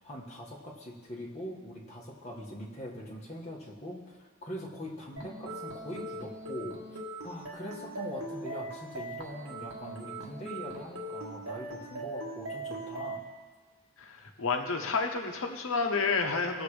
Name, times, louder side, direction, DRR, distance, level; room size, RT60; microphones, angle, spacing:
voice 1, 0.0-6.8 7.2-13.2, equal, 35° left, -4 dB, 1.8 m, -42 dB
sound 1, 5.2-13.2, right 1 dB, 90° right, 1.6 m, -40 dB
voice 2, 14.0-16.6, left 4 dB, 80° left, 4 dB, 1.0 m, -30 dB
18.5 x 7.4 x 3.4 m, 1.4 s
head